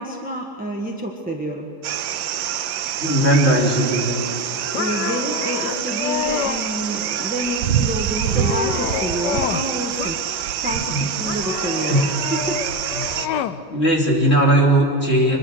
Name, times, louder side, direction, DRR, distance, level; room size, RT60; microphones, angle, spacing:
voice 1, 0.0-1.7 4.7-10.2 10.6-12.0 12.3-12.6, right 1 dB, 5° right, 1 dB, 1.3 m, -28 dB
sound 1, 1.8-13.3, right 11 dB, 65° right, 1.3 m, -26 dB
voice 2, 3.0-4.2 10.9-11.0 11.9-12.1 12.9-13.3 13.7-15.4, right 1 dB, 30° left, -1 dB, 3.4 m, -18 dB
sound 2, 4.7-6.6 7.2-7.7 8.1-9.7 10.0-10.7 11.3-13.6, left 9 dB, 65° left, 1.2 m, -28 dB
24.5 x 21.5 x 6.5 m, 2.4 s
omnidirectional pair, 2.4 m